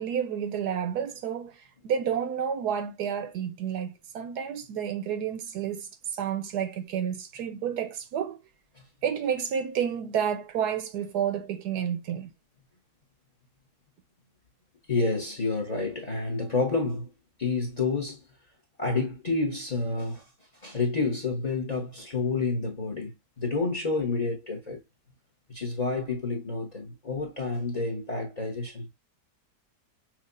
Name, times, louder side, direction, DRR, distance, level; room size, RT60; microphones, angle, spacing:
voice 1, 0.0-8.4 9.0-12.3, right 8 dB, 75° right, 1.1 m, -30 dB
voice 2, 14.9-17.1 17.4-18.2 18.8-20.2 20.6-23.1 23.4-24.8 25.5-28.9, left 3 dB, 30° left, 0.9 m, -29 dB
5.9 x 2.4 x 2.5 m
omnidirectional pair, 1.8 m